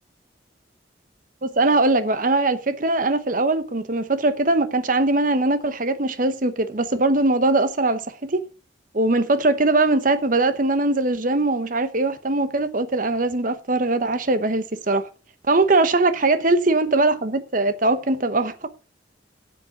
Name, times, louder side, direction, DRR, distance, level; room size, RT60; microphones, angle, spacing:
voice 1, 1.4-8.4 8.9-15.1 15.5-18.7, right 2 dB, 45° right, 1.0 m, -21 dB
8.3 x 7.7 x 7.0 m
head